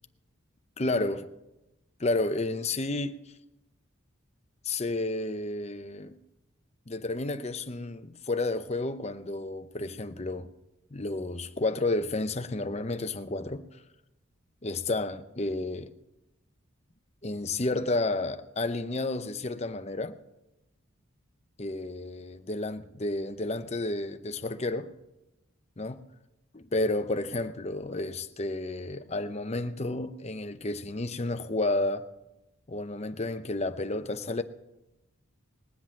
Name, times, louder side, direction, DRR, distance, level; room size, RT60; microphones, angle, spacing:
voice 1, 0.8-1.3 2.0-3.2 4.6-6.2 6.9-10.5 10.9-13.6 14.6-15.9 17.2-20.2 21.6-24.9 25.8-26.0 26.5-32.0 32.7-34.4, left 2 dB, 30° left, 0.7 m, -31 dB
20.0 x 7.9 x 7.4 m
head